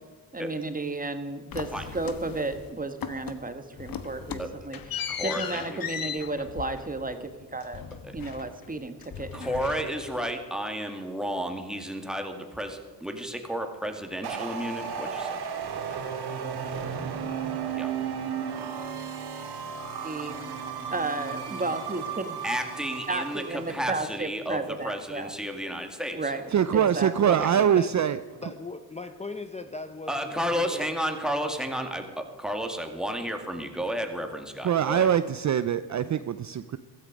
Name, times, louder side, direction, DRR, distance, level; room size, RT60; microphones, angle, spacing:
voice 1, 0.3-7.8 8.1-9.6 20.0-20.4 20.9-22.4 23.1-25.3 26.1-27.3, right 2 dB, 20° right, 8 dB, 1.5 m, -33 dB
sound 1, 1.5-2.7 3.0-3.5 3.8-8.7 9.0-10.3, left 8 dB, 55° left, 1.3 m, -37 dB
voice 2, 5.1-5.6 8.0-8.1 9.3-15.4 17.7-17.9 22.4-26.3 30.1-35.1, equal, ahead, 4 dB, 2.2 m, -32 dB
sound 2, 14.2-23.9, right 7 dB, 70° right, 2.1 m, -34 dB
voice 3, 26.5-28.2 34.6-36.8, right 9 dB, 45° right, 12 dB, 0.6 m, -23 dB
voice 4, 27.4-27.9 28.4-30.9, left 3 dB, 15° left, 8 dB, 0.8 m, -39 dB
15.5 x 13.5 x 5.2 m, 1.4 s
cardioid pair, 85°, 41 cm